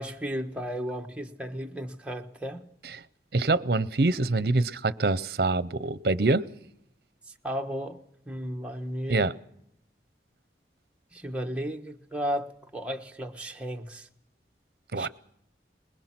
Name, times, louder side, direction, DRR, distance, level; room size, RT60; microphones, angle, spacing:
voice 1, 0.0-2.7 7.4-8.0 8.3-9.3 11.1-14.1 15.0-15.1, equal, 5° right, 1.3 m, -34 dB
voice 2, 3.3-6.4 9.1-9.3 14.9-15.1, right 3 dB, 60° right, 0.7 m, -25 dB
22.5 x 21.0 x 6.0 m
head